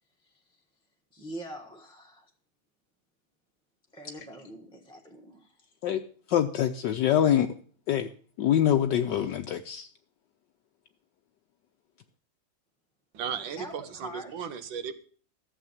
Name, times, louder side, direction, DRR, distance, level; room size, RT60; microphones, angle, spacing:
voice 1, 1.1-2.3 3.9-5.5 13.4-14.5, equal, 5° left, 1.2 m, -44 dB
voice 2, 6.3-7.5 7.9-8.1 8.4-9.9, left 10 dB, 70° left, 1.3 m, -24 dB
voice 3, 13.1-14.9, right 7 dB, 75° right, 1.8 m, -35 dB
12.5 x 7.4 x 7.3 m
omnidirectional pair, 2.1 m